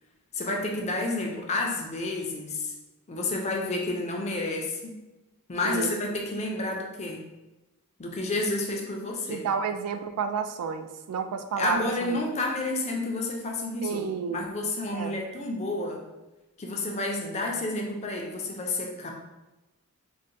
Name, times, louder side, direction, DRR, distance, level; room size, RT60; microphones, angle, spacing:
voice 1, 0.3-2.7 3.1-5.0 5.5-7.2 8.0-9.4 11.6-14.1 14.3-16.0 16.6-19.1, left 2 dB, 30° left, 0 dB, 0.4 m, -30 dB
voice 2, 5.6-6.0 9.3-12.2 13.8-14.5 14.9-15.2, right 6 dB, 90° right, 12 dB, 0.3 m, -31 dB
3.9 x 2.1 x 2.6 m, 1.0 s
head